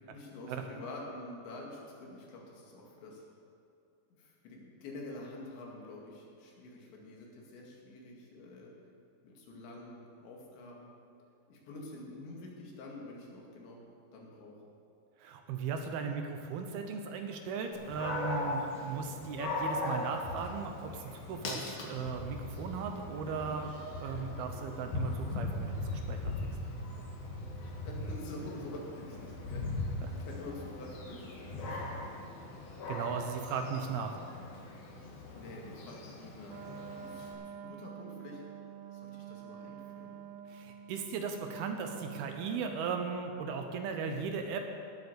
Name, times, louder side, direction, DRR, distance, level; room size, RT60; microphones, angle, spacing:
voice 1, 0.1-3.2 4.1-8.7 9.2-10.9 11.5-13.8 14.1-14.6 27.6-32.1 35.4-38.4 38.9-40.1, left 2 dB, 80° left, -2 dB, 4.4 m, -47 dB
voice 2, 15.2-23.7 24.0-26.6 30.0-30.1 32.9-34.2 40.5-44.7, right 5 dB, 75° right, 5 dB, 2.5 m, -37 dB
Dog, 17.7-37.3, left 2 dB, 55° left, 3.6 m, -39 dB
Wind instrument woodwind instrument, 36.5-43.1, right 9 dB, 90° right, 2.1 m, -47 dB
17.5 x 8.4 x 6.9 m, 2.4 s
omnidirectional pair, 5.1 m